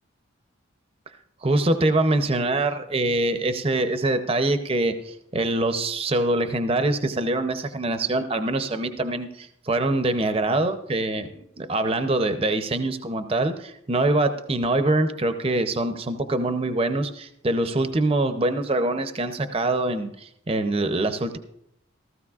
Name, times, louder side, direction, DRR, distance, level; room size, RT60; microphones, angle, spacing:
voice 1, 1.4-11.3 11.6-21.4, right 2 dB, 30° right, 9 dB, 0.6 m, -24 dB
15.5 x 14.0 x 2.4 m, 0.75 s
head